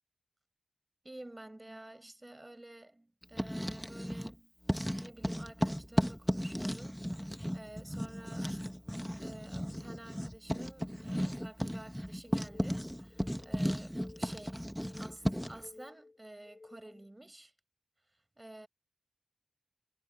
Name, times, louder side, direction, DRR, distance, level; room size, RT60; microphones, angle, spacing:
voice 1, 1.0-4.5 5.0-8.6 9.2-14.6 15.0-17.5 18.1-18.7, right 1 dB, 20° right, 6.4 m, -51 dB
Writing, 3.2-4.4 4.7-15.6, equal, ahead, 1.2 m, -35 dB
sound 1, 12.3-17.1, left 3 dB, 40° left, 5.9 m, -56 dB
wide cardioid pair, 105°, 0 cm